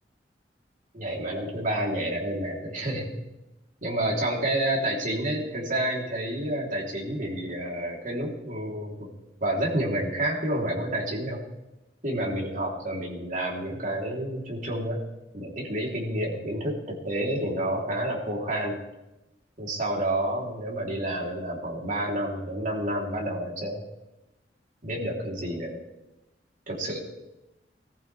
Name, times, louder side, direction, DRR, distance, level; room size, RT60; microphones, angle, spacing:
voice 1, 0.9-3.1 3.8-9.1 9.4-11.4 12.0-15.0 15.3-18.8 19.6-23.8 24.8-25.8 26.7-27.0, right 1 dB, 50° right, -2 dB, 3.7 m, -29 dB
20.5 x 14.5 x 3.5 m, 0.96 s
head